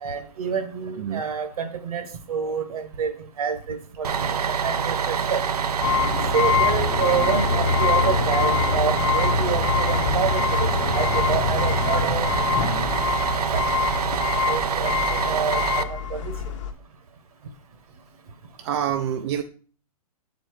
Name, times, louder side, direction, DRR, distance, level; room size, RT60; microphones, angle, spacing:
voice 1, 0.0-5.0 5.3-5.4 6.3-12.3 13.5-13.6 14.4-16.3, right 6 dB, 70° right, 9 dB, 1.3 m, -28 dB
Bus, 4.0-15.8, right 6 dB, 85° right, 0.6 m, -26 dB
sound 1, 5.8-16.7, left 6 dB, 50° left, 1.0 m, -24 dB
voice 2, 18.6-19.4, right 9 dB, 45° right, 6 dB, 0.5 m, -26 dB
6.6 x 4.4 x 4.7 m, 0.42 s
hypercardioid pair, 135°, 19 cm